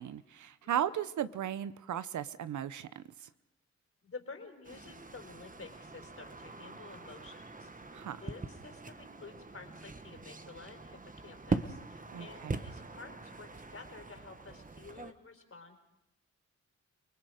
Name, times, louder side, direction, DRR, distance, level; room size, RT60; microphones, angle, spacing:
voice 1, 0.0-3.0 7.9-8.2 12.1-12.6, right 10 dB, 80° right, 15 dB, 0.9 m, -36 dB
voice 2, 4.0-15.7, left 4 dB, 50° left, 5 dB, 4.5 m, -51 dB
sound 1, 4.6-15.1, right 3 dB, 25° right, 1.4 m, -42 dB
29.5 x 20.0 x 5.0 m, 0.91 s
cardioid pair, 60°, 29 cm